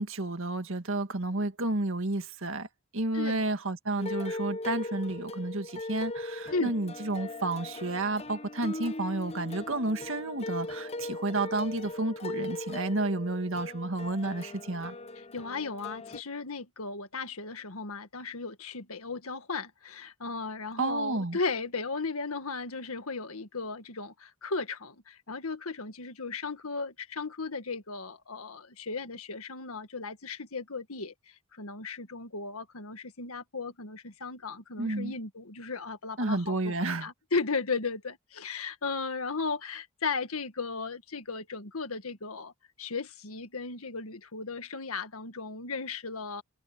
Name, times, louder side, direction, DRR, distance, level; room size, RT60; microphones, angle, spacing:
voice 1, 0.0-2.7 2.9-15.0 20.8-21.4 34.8-35.1 36.2-37.1, right 2 dB, 65° right, 2.0 m, -31 dB
sound 1, 4.0-16.2, left 2 dB, 30° left, 0.7 m, -39 dB
voice 2, 15.3-36.7 37.0-42.5 42.8-46.4, left 4 dB, 80° left, 1.8 m, -36 dB
head